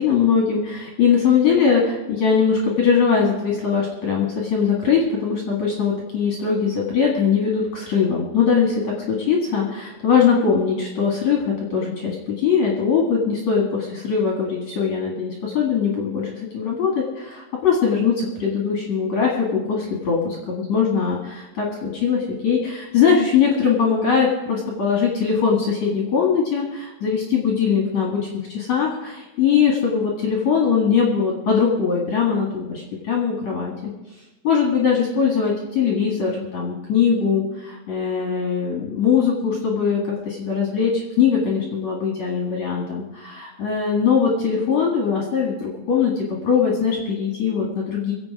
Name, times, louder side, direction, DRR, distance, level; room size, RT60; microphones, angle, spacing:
voice 1, 0.0-28.2 28.5-33.9 34.4-48.1, left 6 dB, 50° left, -2 dB, 2.3 m, -21 dB
23.5 x 8.0 x 4.9 m, 1.0 s
omnidirectional pair, 6.0 m